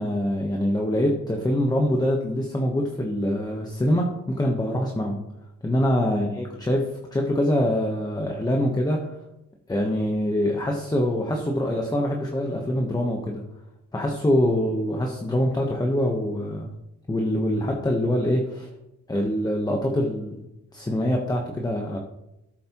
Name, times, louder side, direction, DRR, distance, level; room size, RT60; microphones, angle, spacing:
voice 1, 0.0-5.2 5.6-9.0 9.7-13.4 13.9-16.7 17.1-18.7 19.1-20.5 20.7-22.0, left 1 dB, 15° left, 1 dB, 1.0 m, -24 dB
13.5 x 7.3 x 2.9 m, 0.91 s
wide cardioid pair, 160°, 30 cm